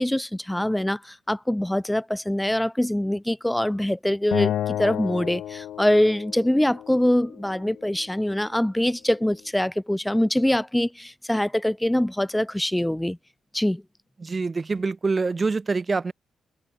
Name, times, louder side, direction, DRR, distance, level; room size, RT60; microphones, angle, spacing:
voice 1, 0.0-13.2 13.5-13.8, left 1 dB, 5° left, 1.0 m, -24 dB
Acoustic guitar, 4.3-7.6, left 11 dB, 80° left, 1.9 m, -31 dB
voice 2, 14.2-16.1, right 4 dB, 30° right, 1.6 m, -25 dB
cardioid pair, 110°, 0 cm